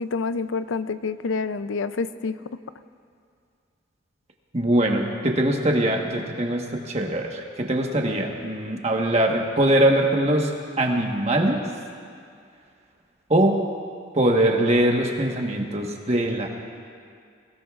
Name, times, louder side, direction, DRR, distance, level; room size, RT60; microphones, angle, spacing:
voice 1, 0.0-2.3, left 4 dB, 85° left, 13 dB, 0.5 m, -27 dB
voice 2, 4.5-11.6 13.3-13.6 14.1-16.5, right 1 dB, 35° right, 1 dB, 1.3 m, -22 dB
23.0 x 17.5 x 2.5 m, 2.3 s
head